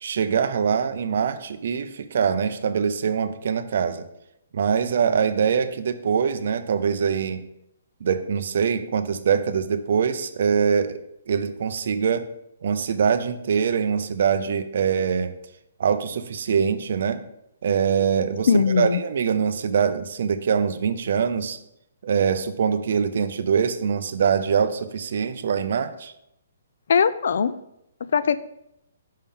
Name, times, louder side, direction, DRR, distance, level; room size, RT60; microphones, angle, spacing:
voice 1, 0.0-4.0 4.5-7.4 8.0-11.0 11.3-12.3 12.6-15.3 15.8-17.2 17.6-21.6 22.0-26.1, right 6 dB, 45° right, 11 dB, 0.4 m, -23 dB
voice 2, 18.5-19.0 26.9-27.5 28.1-28.4, left 6 dB, 50° left, 14 dB, 0.3 m, -20 dB
5.5 x 3.6 x 5.3 m, 0.82 s
hypercardioid pair, 180°, 0 cm